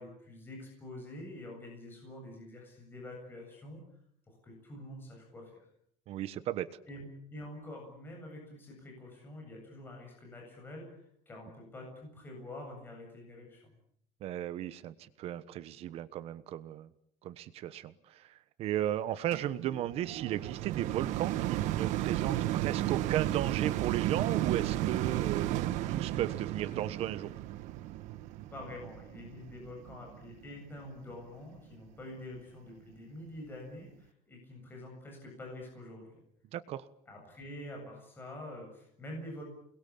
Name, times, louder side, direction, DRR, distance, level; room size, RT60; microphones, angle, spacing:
voice 1, 0.0-3.8 4.3-5.7 6.9-13.7 28.5-36.2 37.1-39.4, left 1 dB, 15° left, 1 dB, 7.8 m, -46 dB
voice 2, 6.1-6.7 14.2-16.9 17.2-27.3 36.5-36.9, right 12 dB, 50° right, 13 dB, 1.3 m, -35 dB
sound 1, 19.3-30.6 31.2-31.3, right 14 dB, 65° right, 1.4 m, -33 dB
29.0 x 21.5 x 8.7 m, 0.70 s
cardioid pair, 180°, 13 cm